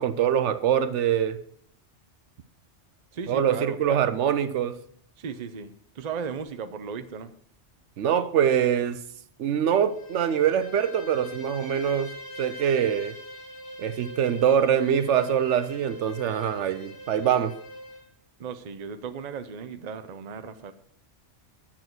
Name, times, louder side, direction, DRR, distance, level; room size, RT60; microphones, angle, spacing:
voice 1, 0.0-1.4 3.3-4.8 8.0-9.0 9.4-12.1 12.4-13.2 13.8-17.5, right 9 dB, 80° right, 1.0 m, -24 dB
voice 2, 3.1-4.1 5.2-7.3 18.4-20.7, right 6 dB, 45° right, 0.7 m, -36 dB
Bowed string instrument, 9.8-18.1, equal, 20° left, 1.1 m, -43 dB
10.5 x 7.4 x 4.5 m
omnidirectional pair, 1.2 m